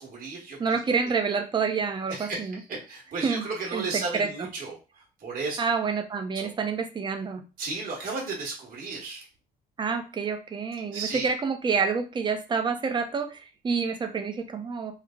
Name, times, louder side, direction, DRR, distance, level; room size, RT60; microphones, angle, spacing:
voice 1, 0.0-0.8 2.1-2.5 2.9-5.6 6.3-6.5 7.6-9.2 10.9-11.3, right 3 dB, 55° right, -2 dB, 1.3 m, -34 dB
voice 2, 0.6-2.6 3.2-3.4 3.7-4.5 5.6-7.4 9.8-14.9, right 5 dB, 25° right, 7 dB, 0.5 m, -28 dB
3.2 x 2.0 x 3.6 m, 0.32 s
cardioid pair, 110°, 17 cm